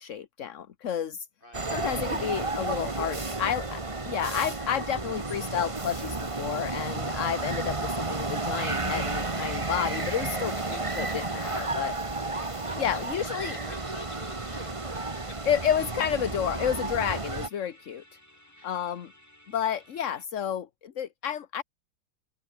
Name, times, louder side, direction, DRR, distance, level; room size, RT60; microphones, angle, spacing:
voice 1, 0.0-1.3 1.7-10.5 11.0-11.9 12.8-13.6 15.5-18.0 18.6-19.1 19.5-21.6, left 9 dB, 50° left, 1.3 m, -30 dB
sound 1, 1.5-17.5, right 3 dB, 20° right, 1.5 m, -32 dB
Musical instrument, 8.6-20.3, equal, 10° left, 4.9 m, -57 dB
voice 2, 10.3-11.8 12.6-15.4 18.6-18.9, left 1 dB, 30° left, 8.1 m, -49 dB
open air
omnidirectional pair, 1.8 m